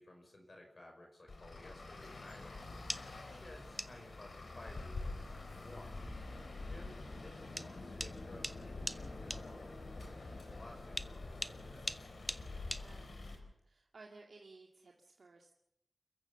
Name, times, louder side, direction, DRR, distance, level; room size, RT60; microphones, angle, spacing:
voice 1, 0.0-2.8 3.2-6.1 6.6-12.0, left 1 dB, 50° left, 2 dB, 5.3 m, -56 dB
Traffic noise roadway noise, 1.3-13.4, left 2 dB, 85° left, 4.2 m, -47 dB
drum sticks unprocessed, 2.6-13.4, equal, ahead, 1.0 m, -46 dB
voice 2, 6.3-7.0 12.6-15.5, right 3 dB, 85° right, 1 dB, 2.1 m, -59 dB
29.0 x 14.5 x 7.1 m, 0.83 s
wide cardioid pair, 70°, 0 cm